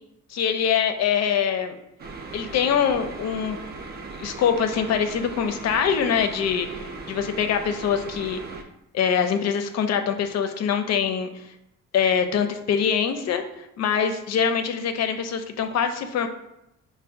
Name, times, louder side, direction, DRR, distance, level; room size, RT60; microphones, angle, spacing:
voice 1, 0.3-1.8 2.3-3.6 4.2-8.4 8.9-11.4 11.9-13.4 13.8-16.3, left 7 dB, 60° left, 7 dB, 0.5 m, -24 dB
sound 1, 2.0-8.6, right 3 dB, 35° right, 0.4 m, -38 dB
5.7 x 2.1 x 2.5 m, 0.84 s
cardioid pair, 90°, 30 cm